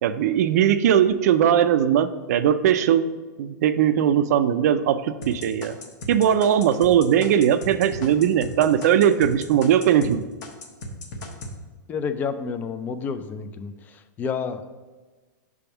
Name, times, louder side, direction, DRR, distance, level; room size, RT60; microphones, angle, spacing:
voice 1, 0.0-3.1 3.4-5.8 6.1-10.2, right 9 dB, 60° right, 12 dB, 0.4 m, -19 dB
sound 1, 5.2-10.1 10.4-11.5, left 1 dB, 75° left, 1.2 m, -36 dB
voice 2, 11.9-13.7 14.2-14.7, left 6 dB, 15° left, 10 dB, 0.3 m, -29 dB
6.0 x 3.6 x 5.7 m, 1.3 s
hypercardioid pair, 150°, 10 cm